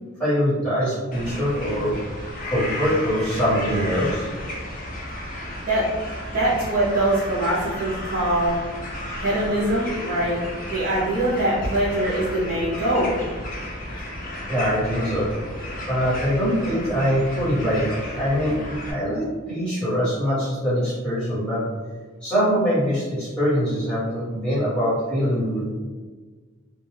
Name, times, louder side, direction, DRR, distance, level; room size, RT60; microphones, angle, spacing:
voice 1, 0.2-4.3 14.5-15.3 15.9-18.6 18.9-21.6 22.2-25.6, equal, 5° left, -13 dB, 1.2 m, -23 dB
sound 1, 1.1-18.9, left 1 dB, 40° left, 0.5 m, -33 dB
voice 2, 6.3-8.6 9.2-10.4 10.6-13.1, right 1 dB, 40° right, -8 dB, 0.5 m, -23 dB
2.2 x 2.2 x 3.1 m, 1.4 s
head